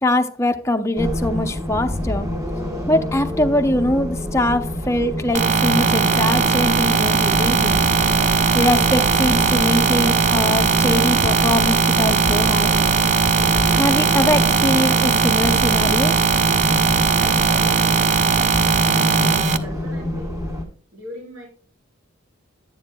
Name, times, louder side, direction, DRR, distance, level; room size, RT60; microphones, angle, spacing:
voice 1, 0.0-2.3 2.9-7.8 8.5-12.7 13.8-16.1, left 1 dB, 15° left, 0.6 m, -22 dB
sound 1, 1.0-20.7, left 1 dB, 15° right, 1.7 m, -28 dB
sound 2, 1.7-13.8, right 2 dB, 50° right, 2.4 m, -39 dB
sound 3, 5.3-19.6, right 5 dB, 35° right, 0.4 m, -18 dB
voice 2, 19.3-20.5 20.9-21.5, left 1 dB, 80° right, 4.4 m, -39 dB
11.5 x 9.2 x 2.2 m
head